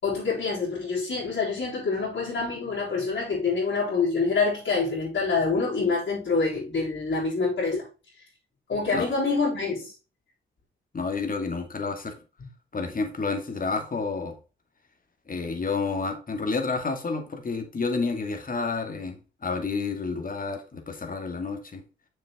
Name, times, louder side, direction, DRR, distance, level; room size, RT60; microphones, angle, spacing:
voice 1, 0.0-7.9 8.7-9.9, left 4 dB, 60° left, 4.0 m, -26 dB
voice 2, 10.9-12.1 12.7-14.4 15.3-21.8, left 4 dB, 40° left, 2.3 m, -30 dB
6.6 x 6.5 x 3.7 m
supercardioid pair, 50°, 21 cm